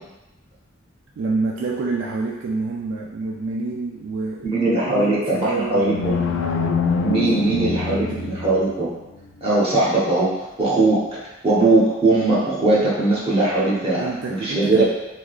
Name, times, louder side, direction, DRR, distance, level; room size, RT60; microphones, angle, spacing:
voice 1, 1.2-6.4 7.3-8.4 14.0-14.8, right 3 dB, 65° right, -2 dB, 0.3 m, -28 dB
voice 2, 4.4-6.1 7.0-8.9 9.4-10.3 10.6-11.0 11.4-14.8, right 2 dB, 30° right, -7 dB, 1.0 m, -19 dB
sound 1, 5.5-8.8, left 5 dB, 70° left, 0.3 m, -24 dB
3.6 x 2.9 x 2.3 m, 1.0 s
head